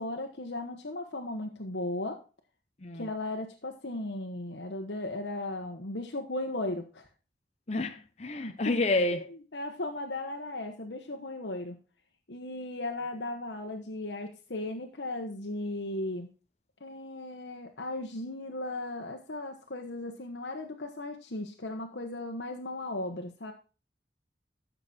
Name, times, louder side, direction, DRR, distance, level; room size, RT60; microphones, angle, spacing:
voice 1, 0.0-2.2 2.9-7.0 8.4-9.1 9.5-11.8 12.3-16.3 16.8-23.5, left 2 dB, 80° left, 1.2 m, -36 dB
voice 2, 7.7-9.3, left 2 dB, 40° left, 0.8 m, -29 dB
13.0 x 6.8 x 4.3 m
head